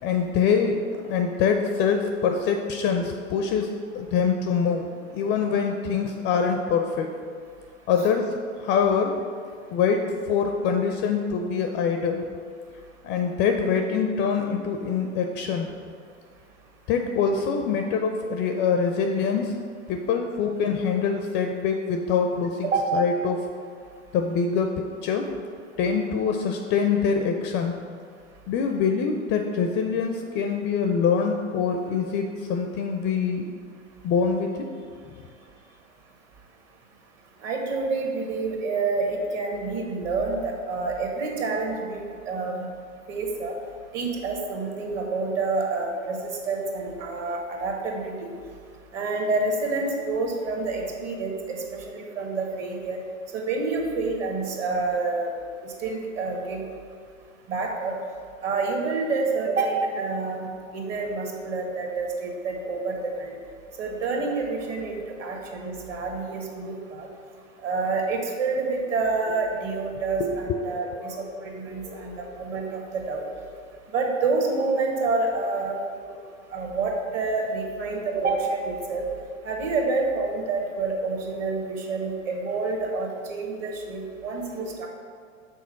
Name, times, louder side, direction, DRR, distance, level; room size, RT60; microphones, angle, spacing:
voice 1, 0.0-7.1 7.9-9.2 9.7-12.2 13.0-15.7 16.9-19.6 19.9-23.5 24.1-25.3 25.8-27.8 28.5-33.5 34.0-34.7 70.2-70.6 70.9-71.3 71.8-72.3 76.2-76.3 84.6-84.7, left 6 dB, 30° left, 4 dB, 0.5 m, -25 dB
voice 2, 37.4-42.6 43.1-43.5 43.9-48.3 48.9-53.0 53.3-55.3 55.6-56.6 57.5-58.0 58.4-63.3 63.8-67.1 67.6-73.2 73.9-75.8 76.5-79.0 79.4-84.9, right 3 dB, 40° right, 1 dB, 1.4 m, -28 dB
6.3 x 4.1 x 5.7 m, 2.1 s
figure-of-eight pair, 95°, 40 cm